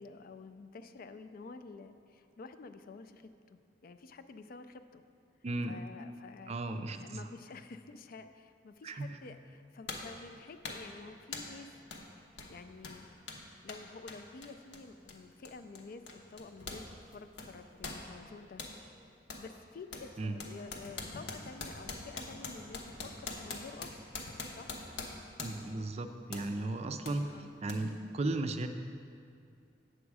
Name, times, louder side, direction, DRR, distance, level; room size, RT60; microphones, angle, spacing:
voice 1, 0.0-5.0 5.7-6.6 7.0-11.7 12.5-13.1 13.6-18.6 19.3-22.9 23.2-24.0 24.6-24.8 27.3-27.5, left 4 dB, 50° left, 9 dB, 0.4 m, -50 dB
voice 2, 5.4-5.8 6.5-7.3 8.8-9.2 20.2-20.4 25.4-28.7, right 2 dB, 35° right, 7 dB, 0.4 m, -36 dB
sound 1, 9.0-9.1 9.9-10.2 10.6-10.9 11.3-11.6 11.9-12.1 12.3-16.9 17.1-18.8 19.3-19.5 19.9-25.8 26.3-26.5 27.1-27.2 27.7-27.8, left 3 dB, 75° left, 0.9 m, -44 dB
8.0 x 7.2 x 4.8 m, 2.3 s
head